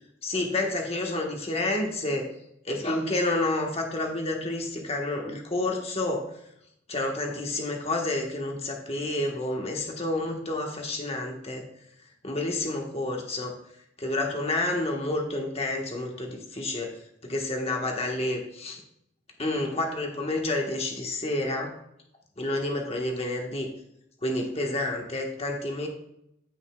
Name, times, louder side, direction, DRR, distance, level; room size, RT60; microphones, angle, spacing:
voice 1, 0.2-2.2 2.6-6.2 6.9-11.6 12.2-13.5 14.0-16.9 17.2-18.8 19.4-21.7 22.4-23.7 24.2-25.9, left 2 dB, 35° left, 1 dB, 1.3 m, -29 dB
15.0 x 5.5 x 2.3 m, 0.78 s
head